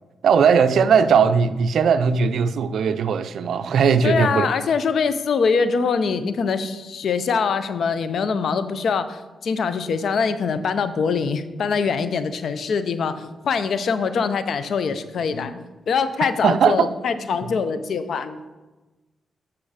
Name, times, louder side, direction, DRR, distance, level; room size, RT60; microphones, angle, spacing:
voice 1, 0.2-4.5 16.4-16.9, right 6 dB, 80° right, 0.4 m, -18 dB
voice 2, 4.0-18.6, left 5 dB, 75° left, 0.6 m, -23 dB
8.7 x 5.8 x 4.9 m
cardioid pair, 75°, 0 cm